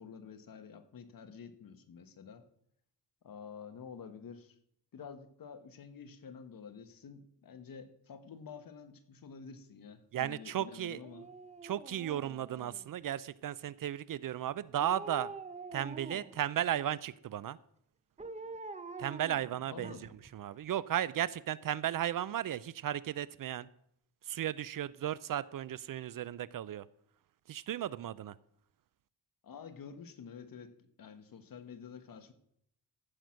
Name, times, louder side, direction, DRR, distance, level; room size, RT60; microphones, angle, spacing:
voice 1, 0.0-2.5 3.2-4.6 4.9-11.3 19.7-20.1 29.4-32.3, left 6 dB, 55° left, 9 dB, 1.3 m, -49 dB
voice 2, 10.1-11.0 11.6-15.3 15.7-17.6 19.0-20.0 20.3-23.7 24.2-26.9 27.5-28.3, right 11 dB, 55° right, 19 dB, 0.5 m, -35 dB
Dog, 11.0-13.1 14.8-16.5 18.2-20.3 20.6-20.7, right 3 dB, 15° right, 0.7 m, -46 dB
14.5 x 6.0 x 6.4 m, 0.72 s
wide cardioid pair, 135°, 41 cm